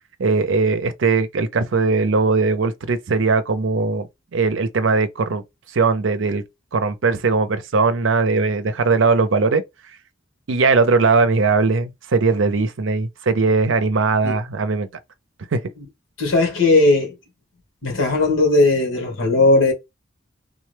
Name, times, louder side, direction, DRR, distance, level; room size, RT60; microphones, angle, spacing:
voice 1, 0.2-4.1 4.3-5.4 5.7-6.4 6.7-9.6 10.5-14.9 15.5-15.6, right 4 dB, 80° right, 0.6 m, -19 dB
voice 2, 16.2-17.1 17.8-19.7, left 2 dB, 80° left, 1.6 m, -17 dB
3.6 x 2.2 x 3.2 m
head